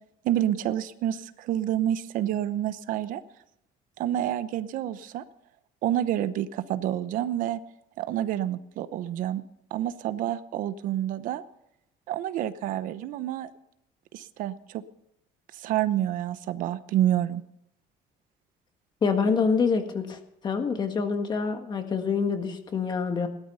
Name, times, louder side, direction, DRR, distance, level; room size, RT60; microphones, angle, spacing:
voice 1, 0.2-3.2 4.0-5.2 5.8-7.6 8.0-9.4 9.7-11.4 12.1-13.5 14.1-14.8 15.5-17.4, right 12 dB, 65° right, 13 dB, 0.9 m, -28 dB
voice 2, 19.0-23.3, left 5 dB, 30° left, 6 dB, 1.8 m, -26 dB
17.5 x 13.0 x 5.6 m, 0.79 s
cardioid pair, 165°, 15 cm